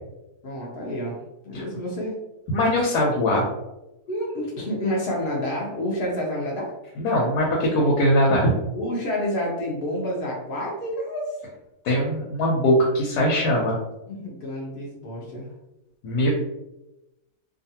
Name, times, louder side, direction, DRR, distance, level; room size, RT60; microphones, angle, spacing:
voice 1, 0.4-2.2 4.1-6.7 8.7-11.3 14.1-15.5, equal, 60° left, -3 dB, 0.6 m, -29 dB
voice 2, 2.5-3.4 7.0-8.5 11.8-13.8 16.0-16.3, equal, 85° left, -3 dB, 1.2 m, -21 dB
2.6 x 2.4 x 2.7 m, 0.94 s
omnidirectional pair, 1.6 m